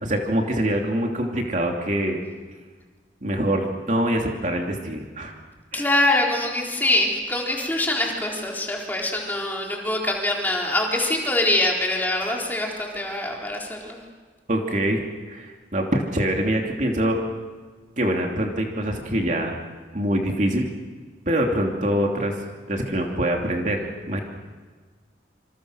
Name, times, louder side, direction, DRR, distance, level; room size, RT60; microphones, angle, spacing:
voice 1, 0.0-2.2 3.2-5.3 5.7-5.8 14.5-17.2 18.0-19.5 19.9-20.7 21.3-22.4 22.7-23.8 24.1-24.2, right 1 dB, 40° right, 1 dB, 2.9 m, -24 dB
voice 2, 5.7-14.0, left 1 dB, 10° left, -1 dB, 4.0 m, -24 dB
28.0 x 26.5 x 6.5 m, 1.4 s
head